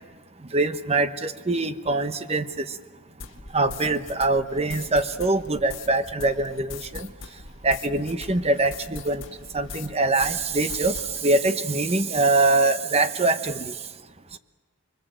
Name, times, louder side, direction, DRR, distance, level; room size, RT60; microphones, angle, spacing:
voice 1, 0.5-2.6 3.5-7.1 7.6-9.2 9.5-13.7, right 2 dB, 30° right, 10 dB, 1.0 m, -23 dB
sound 1, 3.2-9.9 10.2-11.2, left 4 dB, 60° left, 2.0 m, -41 dB
30.0 x 22.5 x 7.5 m, 1.3 s
head